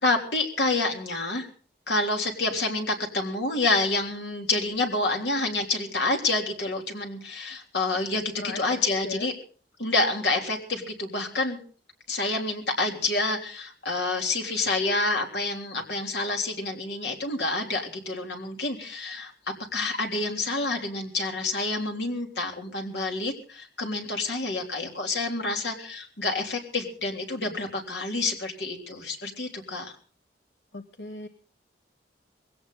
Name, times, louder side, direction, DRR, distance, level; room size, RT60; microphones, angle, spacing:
voice 1, 0.0-1.5 1.9-9.3 9.8-11.6 12.1-19.3 19.7-29.9, left 2 dB, 70° left, 2 dB, 3.4 m, -28 dB
voice 2, 30.7-31.3, left 3 dB, 90° left, 7 dB, 1.1 m, -37 dB
20.0 x 17.0 x 4.0 m, 0.42 s
head